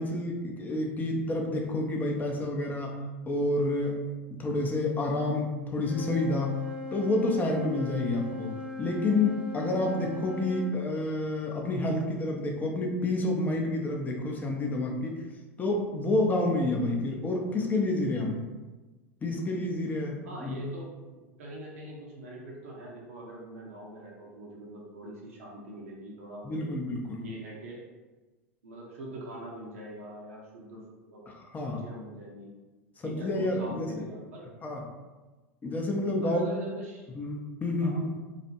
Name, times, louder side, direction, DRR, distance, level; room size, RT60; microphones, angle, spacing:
voice 1, 0.0-3.0 3.3-4.0 4.3-6.6 6.9-15.2 15.6-18.4 19.2-20.6 26.4-27.3 31.3-31.8 33.0-34.1 34.6-34.8 35.6-36.5 37.1-38.1, left 2 dB, 25° left, 1 dB, 0.5 m, -29 dB
Wind instrument woodwind instrument, 5.8-10.7, left 2 dB, 15° right, 0.8 m, -39 dB
voice 2, 20.2-26.6 27.2-27.8 28.6-30.8 31.1-31.2 31.6-32.5 33.0-34.5 36.2-37.1 37.8-38.1, right 1 dB, 75° right, -3 dB, 0.7 m, -43 dB
2.4 x 2.1 x 2.8 m, 1.2 s
hypercardioid pair, 85°, 7 cm